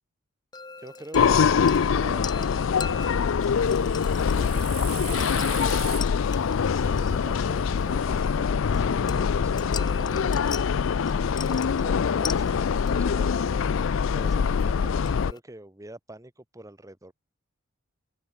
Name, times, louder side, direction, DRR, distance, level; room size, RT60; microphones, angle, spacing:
sound 1, 0.5-15.4, left 6 dB, 20° left, 0.9 m, -42 dB
voice 1, 0.8-2.8 3.4-4.0 4.3-6.0 6.7-10.5 11.0-13.5 14.1-17.1, right 1 dB, 15° right, 1.2 m, -46 dB
sound 2, 1.1-15.3, left 6 dB, 65° left, 0.4 m, -24 dB
sound 3, 3.4-8.4, right 12 dB, 40° right, 2.3 m, -42 dB
open air
head